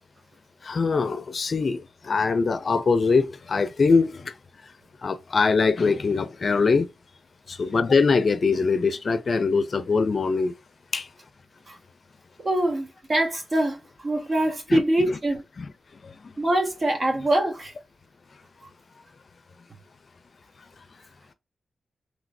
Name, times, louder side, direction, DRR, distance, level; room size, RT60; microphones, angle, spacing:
voice 1, 0.6-4.4 5.0-6.9 7.5-10.5 10.9-11.1 14.7-14.8 15.6-15.7 16.0-16.3, left 4 dB, 55° left, 0.4 m, -23 dB
voice 2, 12.4-15.4 16.4-17.7, right 1 dB, 45° right, 1.4 m, -24 dB
3.1 x 3.0 x 2.6 m
cardioid pair, 50°, 0 cm